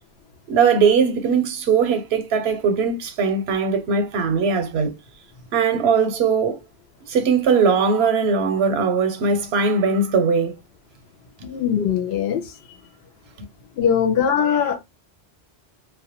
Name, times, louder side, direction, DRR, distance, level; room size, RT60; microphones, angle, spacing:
voice 1, 0.5-5.0 5.5-6.6 7.1-10.5, right 5 dB, 85° right, 0.8 m, -20 dB
voice 2, 11.4-12.5 13.8-14.8, left 8 dB, 80° left, 0.8 m, -21 dB
2.2 x 2.0 x 2.8 m
omnidirectional pair, 1.0 m